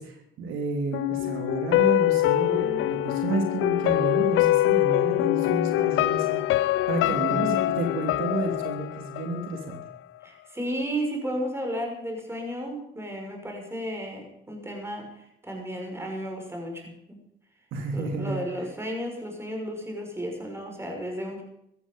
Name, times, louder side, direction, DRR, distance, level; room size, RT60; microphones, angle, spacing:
voice 1, 0.0-9.8 17.7-18.4, right 3 dB, 90° right, 3 dB, 3.2 m, -31 dB
sound 1, 0.9-9.9 10.2-10.3, left 16 dB, 85° left, 0.5 m, -24 dB
voice 2, 7.1-7.4 10.2-17.2 17.9-21.4, equal, 10° right, 2 dB, 6.2 m, -33 dB
15.0 x 13.5 x 5.5 m, 0.78 s
cardioid pair, 90°, 20 cm